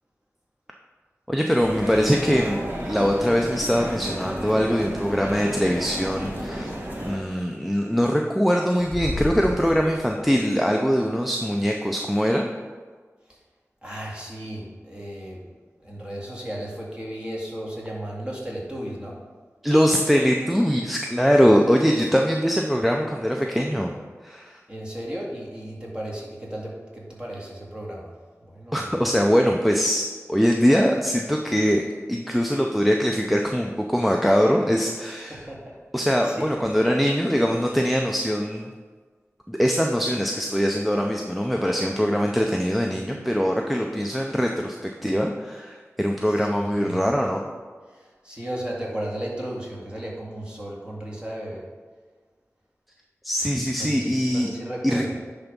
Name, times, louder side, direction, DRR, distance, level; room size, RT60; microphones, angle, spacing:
voice 1, 1.3-6.7 7.0-12.5 19.6-23.9 24.2-24.6 28.7-35.4 35.9-38.7 39.5-47.4 53.2-54.5 54.8-55.0, equal, ahead, 1 dB, 0.6 m, -22 dB
sound 1, 1.6-7.2, equal, 35° right, 1.7 m, -32 dB
sound 2, 8.8-10.4, left 2 dB, 40° left, 0.7 m, -32 dB
voice 2, 13.8-15.4 15.8-19.2 24.7-28.1 28.4-29.0 35.3-35.8 36.2-36.5 46.3-46.5 46.7-47.1 47.9-51.7 53.8-55.2, right 1 dB, 20° right, -4 dB, 2.2 m, -35 dB
10.0 x 3.5 x 5.3 m, 1.5 s
wide cardioid pair, 50°, 5 cm